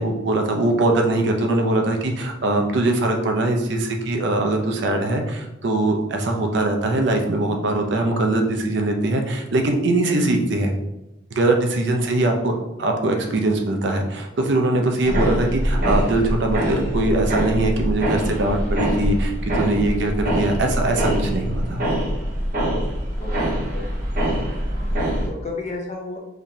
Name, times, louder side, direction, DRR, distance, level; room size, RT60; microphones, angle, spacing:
voice 1, 0.0-10.7 11.3-12.5 12.8-21.8, right 2 dB, 60° right, 3 dB, 0.5 m, -21 dB
voice 2, 10.0-10.4 12.0-12.4 22.6-22.8 23.2-23.3 23.7-23.8 24.8-26.2, left 2 dB, 35° left, 0 dB, 0.6 m, -35 dB
sound 1, 15.0-25.3, right 1 dB, 45° right, 0.9 m, -24 dB
4.1 x 3.1 x 2.7 m, 0.94 s
head